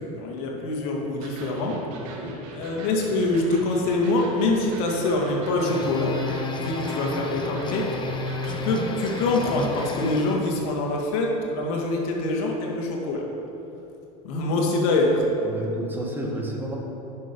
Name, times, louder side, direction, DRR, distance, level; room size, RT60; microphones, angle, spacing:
voice 1, 0.0-1.8 2.5-6.2 6.5-7.9 8.4-13.3 14.2-15.3, left 2 dB, 70° left, 0 dB, 2.0 m, -25 dB
Electric guitar, 1.2-9.9, right 2 dB, 70° right, 2.0 m, -41 dB
voice 2, 2.0-2.3 15.4-16.7, right 1 dB, 10° right, -1 dB, 1.8 m, -31 dB
sound 1, 5.4-10.5, left 2 dB, 25° left, 0.9 m, -31 dB
10.0 x 6.2 x 5.5 m, 2.9 s
supercardioid pair, 105°, 19 cm